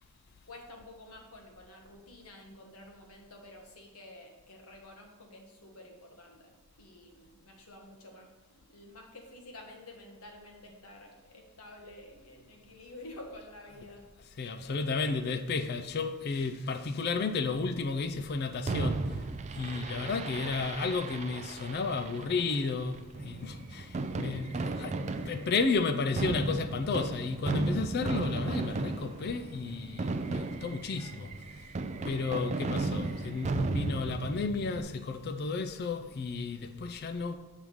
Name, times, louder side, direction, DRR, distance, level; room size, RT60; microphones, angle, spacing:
voice 1, 0.5-14.0 14.6-14.9 31.0-31.4 33.0-33.3, left 1 dB, 80° left, 1.3 m, -50 dB
voice 2, 14.4-19.2 19.5-31.7 32.0-37.4, left 4 dB, 45° left, 0.4 m, -33 dB
Fireworks, 18.7-34.8, right 3 dB, 30° right, 0.3 m, -35 dB
7.3 x 3.5 x 6.3 m
head